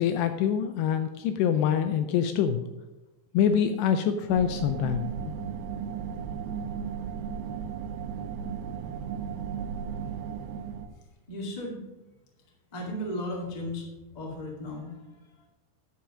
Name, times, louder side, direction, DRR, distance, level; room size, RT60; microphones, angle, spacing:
voice 1, 0.0-2.6 3.3-5.3, left 8 dB, 80° left, 8 dB, 2.5 m, -25 dB
sound 1, 4.3-10.9, right 7 dB, 75° right, 2.3 m, -35 dB
voice 2, 11.3-11.8 12.7-13.9 14.1-15.5, left 1 dB, 30° left, -2 dB, 0.7 m, -35 dB
10.0 x 7.2 x 6.2 m, 1.0 s
omnidirectional pair, 5.3 m